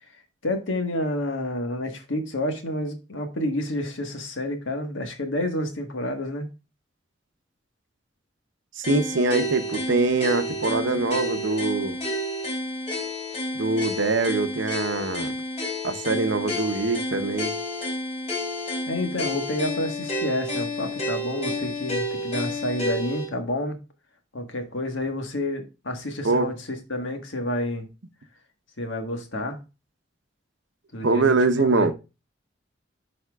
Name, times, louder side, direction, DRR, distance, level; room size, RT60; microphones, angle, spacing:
voice 1, 0.4-6.5 18.9-23.8 24.3-27.9 28.8-29.6 30.9-31.9, left 1 dB, 80° left, 1.4 m, -29 dB
sound 1, 8.8-23.3, left 1 dB, 35° left, 3.2 m, -30 dB
voice 2, 8.8-12.0 13.5-15.3 15.8-17.6 26.2-26.5 31.0-31.9, right 3 dB, 70° right, 0.8 m, -23 dB
11.0 x 4.4 x 2.3 m
head